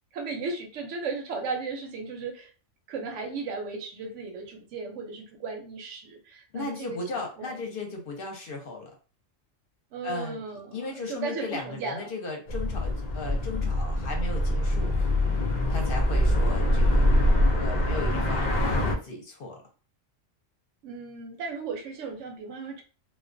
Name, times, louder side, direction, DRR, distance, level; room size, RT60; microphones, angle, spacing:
voice 1, 0.1-2.5 2.9-7.0 7.4-7.7 9.9-12.1 20.8-22.8, right 4 dB, 70° right, 4 dB, 0.9 m, -36 dB
voice 2, 6.5-8.9 10.0-10.4 10.7-14.9 15.7-17.1 17.5-19.6, left 3 dB, 55° left, 2 dB, 0.7 m, -36 dB
sound 1, 12.5-18.9, left 1 dB, 75° left, 0.4 m, -24 dB
2.2 x 2.2 x 2.5 m, 0.36 s
omnidirectional pair, 1.3 m